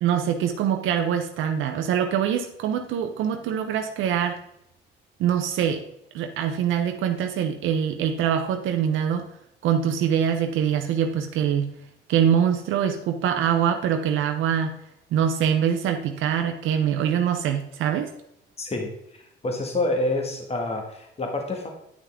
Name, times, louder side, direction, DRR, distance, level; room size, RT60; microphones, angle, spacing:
voice 1, 0.0-4.4 5.2-5.8 6.1-9.3 9.6-11.7 12.1-14.7 15.1-18.1, right 8 dB, 90° right, 5 dB, 0.7 m, -24 dB
voice 2, 18.6-21.7, left 2 dB, 30° left, 2 dB, 1.8 m, -28 dB
9.8 x 5.8 x 3.6 m, 0.79 s
cardioid pair, 90°, 20 cm